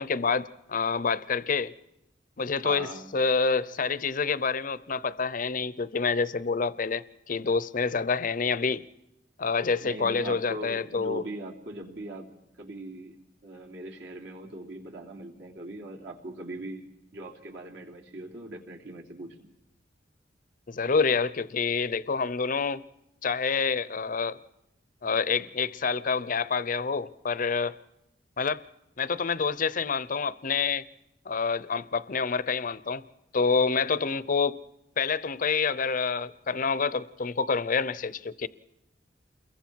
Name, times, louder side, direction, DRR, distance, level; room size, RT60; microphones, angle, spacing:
voice 1, 0.0-1.7 2.4-8.8 9.4-11.2 20.7-22.8 23.2-24.4 25.0-27.7 28.4-28.6 29.0-30.8 31.3-33.0 33.3-34.6 35.0-38.5, left 5 dB, 45° left, 0.7 m, -27 dB
voice 2, 2.6-3.1 9.8-12.3 12.6-13.2 13.4-16.8 17.1-19.4, right 2 dB, 70° right, 3.3 m, -40 dB
28.5 x 22.0 x 4.6 m
head